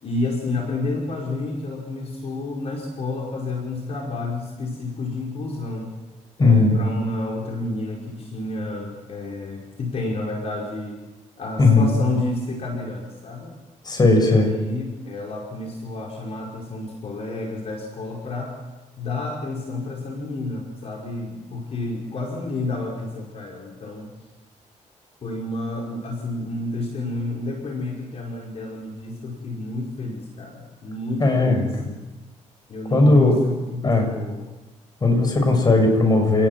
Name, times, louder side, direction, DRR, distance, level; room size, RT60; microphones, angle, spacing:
voice 1, 0.0-5.9 6.4-11.0 11.4-13.5 14.2-18.6 19.0-24.1 25.2-32.0 32.7-34.5, left 2 dB, 55° left, -1 dB, 5.1 m, -30 dB
voice 2, 6.4-6.8 11.6-11.9 13.8-14.5 31.2-31.7 32.9-33.3 33.8-34.1 35.0-36.5, left 2 dB, 30° left, 4 dB, 7.0 m, -17 dB
29.0 x 19.0 x 7.5 m, 1.1 s
cardioid pair, 110°, 13 cm